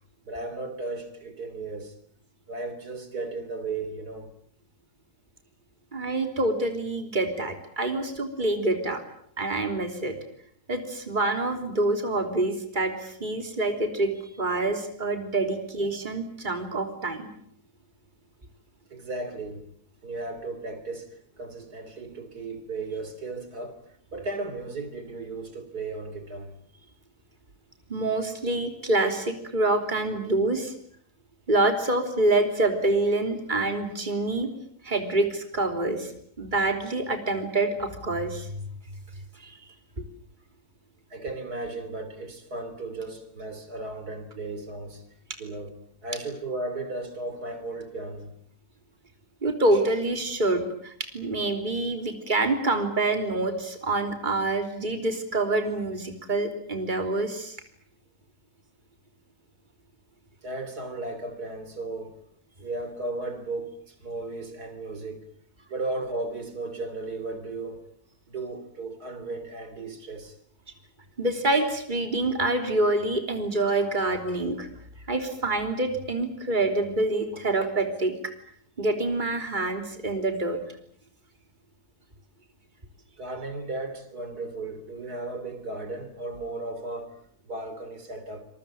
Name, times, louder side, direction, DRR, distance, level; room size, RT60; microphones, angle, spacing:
voice 1, 0.3-2.0 2.5-4.3 18.9-19.7 20.0-23.8 24.1-26.6 41.1-45.0 45.4-48.3 60.4-62.2 62.6-65.3 65.7-67.8 68.3-70.4 83.2-87.2 87.4-88.4, right 2 dB, 80° right, 3.7 m, -35 dB
voice 2, 5.9-9.0 9.4-10.2 10.7-14.1 14.4-17.3 27.9-30.7 31.5-34.5 34.8-36.1 36.4-38.6 39.4-39.5 40.0-40.1 49.4-57.6 71.2-74.7 75.1-78.1 78.8-80.6, right 2 dB, 30° right, 3.5 m, -26 dB
26.5 x 21.5 x 8.8 m
omnidirectional pair, 1.6 m